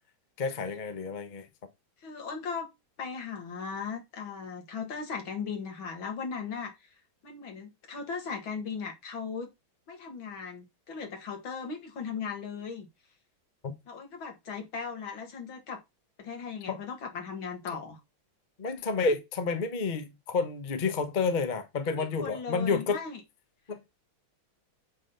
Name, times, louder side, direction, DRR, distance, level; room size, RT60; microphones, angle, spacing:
voice 1, 0.4-1.5 13.6-13.7 16.7-16.8 18.6-23.0 23.7-23.9, left 4 dB, 35° left, 0.8 m, -30 dB
voice 2, 2.0-2.7 3.0-6.9 7.2-9.5 9.9-12.9 13.9-15.8 16.2-18.0 21.9-23.2, left 5 dB, 70° left, 2.6 m, -37 dB
8.4 x 3.9 x 5.4 m
omnidirectional pair, 2.2 m